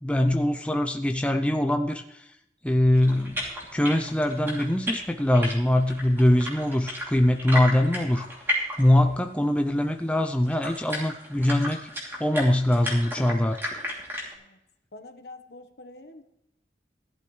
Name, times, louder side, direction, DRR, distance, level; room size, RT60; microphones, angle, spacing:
voice 1, 0.0-2.2 2.6-3.4 3.7-8.2 8.5-11.9 12.2-13.6, left 1 dB, 5° left, 5 dB, 0.5 m, -23 dB
sound 1, 2.9-9.2 9.5-9.6 10.2-14.3, left 1 dB, 15° right, 2.9 m, -34 dB
voice 2, 14.9-16.2, left 2 dB, 70° left, 7 dB, 1.2 m, -46 dB
16.0 x 12.0 x 3.2 m, 0.82 s
head